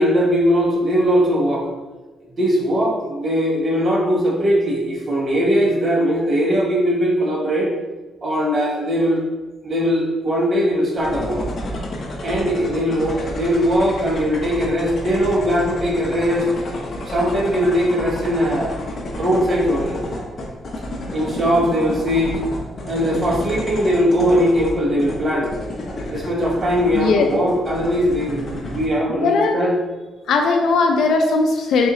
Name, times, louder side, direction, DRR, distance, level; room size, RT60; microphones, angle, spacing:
voice 1, 0.0-1.7 2.4-7.7 8.2-9.2 9.6-11.4 12.2-16.5 17.0-18.8 19.2-20.0 21.1-22.4 22.8-25.5 26.1-29.7, equal, 35° right, -2 dB, 0.8 m, -20 dB
sound 1, 11.0-28.9, left 1 dB, 40° left, 0.7 m, -31 dB
voice 2, 29.2-29.6 30.3-31.9, left 4 dB, 70° left, 3 dB, 0.4 m, -18 dB
4.1 x 2.9 x 3.6 m, 1.2 s
cardioid pair, 135°, 0 cm